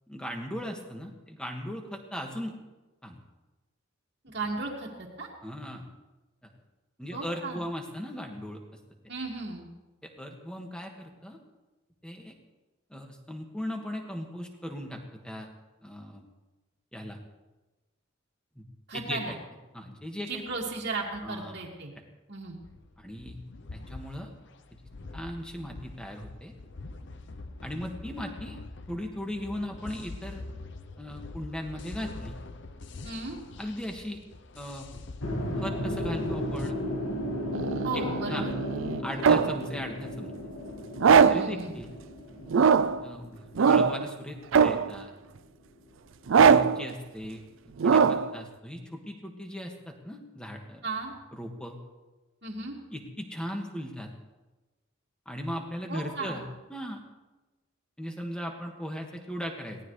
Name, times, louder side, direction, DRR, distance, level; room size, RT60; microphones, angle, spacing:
voice 1, 0.1-2.6 3.0-3.2 5.4-5.8 6.4-6.5 7.0-8.6 10.0-11.4 12.0-12.3 12.9-15.5 15.8-16.2 16.9-17.2 18.6-18.7 18.9-19.4 19.7-20.4 21.2-21.6 23.0-23.4 23.7-24.3 25.1-26.5 27.6-28.6 28.9-30.4 31.0-32.4 33.6-34.2 34.6-34.9 35.5-36.8 37.9-38.5 39.0-40.3 41.3-41.9 43.0-45.1 46.4-50.9 51.3-51.8 52.9-54.1 55.3-56.4 56.7-57.0 58.0-59.8, equal, 5° left, 2 dB, 1.8 m, -38 dB
voice 2, 4.2-5.3 7.1-7.6 9.1-9.7 18.9-19.3 20.3-21.9 22.3-22.6 33.0-33.4 37.8-38.5 41.1-41.8 50.8-51.1 52.4-52.8 55.9-56.5, right 3 dB, 55° right, -6 dB, 2.2 m, -35 dB
sound 1, 22.6-36.7, left 2 dB, 60° left, 0.7 m, -44 dB
sound 2, 35.2-45.4, left 1 dB, 85° left, 2.1 m, -35 dB
sound 3, 37.5-39.6 41.0-41.6 42.5-43.0 43.6-44.1 44.5-45.0 46.3-46.8 47.8-48.4, right 6 dB, 75° right, 0.4 m, -21 dB
22.5 x 17.5 x 3.3 m, 1.1 s
head